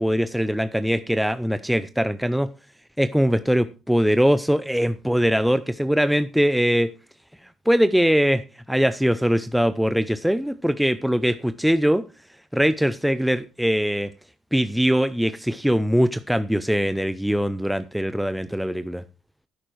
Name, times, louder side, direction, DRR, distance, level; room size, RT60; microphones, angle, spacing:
voice 1, 0.0-2.5 3.0-6.9 7.7-8.4 8.7-12.0 12.5-14.1 14.5-19.0, equal, ahead, 12 dB, 0.6 m, -21 dB
10.0 x 8.7 x 4.7 m, 0.32 s
cardioid pair, 90°, 0 cm